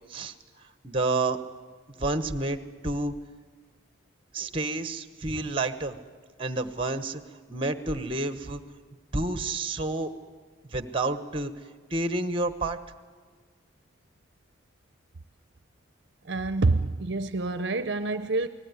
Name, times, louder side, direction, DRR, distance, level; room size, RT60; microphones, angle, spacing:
voice 1, 0.8-1.4 2.0-2.6 2.8-3.1 4.3-6.0 6.4-7.2 7.5-8.6 9.1-10.1 10.6-11.5 11.9-12.8, right 2 dB, 25° right, 10 dB, 1.2 m, -29 dB
voice 2, 16.2-18.5, right 3 dB, 55° right, 11 dB, 0.7 m, -27 dB
28.5 x 19.5 x 9.6 m, 1.5 s
head